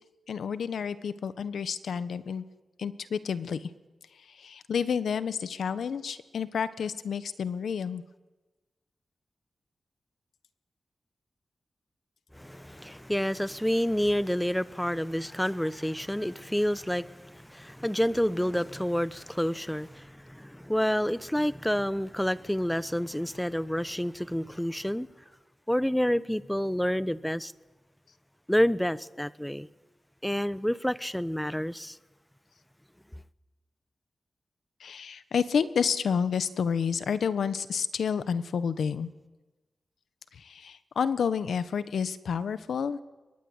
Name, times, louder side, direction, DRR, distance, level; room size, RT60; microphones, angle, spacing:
voice 1, 0.3-2.4 2.8-3.7 4.2-8.0 34.8-39.1 40.3-43.0, left 6 dB, 85° left, 1.3 m, -30 dB
voice 2, 12.3-25.1 25.7-27.5 28.5-29.7 30.2-32.0, equal, 5° left, 1.0 m, -29 dB
23.0 x 22.0 x 9.9 m
cardioid pair, 70°, 0 cm